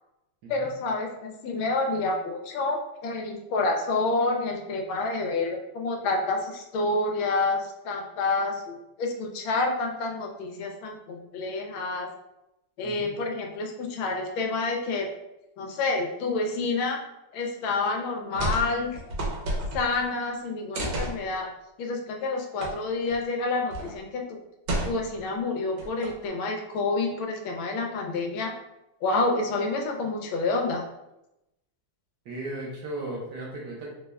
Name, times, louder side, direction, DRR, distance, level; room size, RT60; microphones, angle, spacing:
voice 1, 0.5-12.1 12.8-15.1 15.6-17.0 17.3-19.0 19.7-21.5 21.8-24.4 24.8-28.5 29.0-30.8, left 3 dB, 75° left, 2 dB, 1.4 m, -28 dB
voice 2, 12.8-13.1 32.2-33.9, right 1 dB, 65° right, -3 dB, 1.1 m, -36 dB
sound 1, 18.3-18.7 18.9-20.0 20.7-21.2 22.6-22.7 23.1-23.2 23.7-24.0 24.7-25.2 25.8-26.3, right 1 dB, 80° right, 1.8 m, -30 dB
3.9 x 3.2 x 2.2 m, 0.90 s
omnidirectional pair, 2.4 m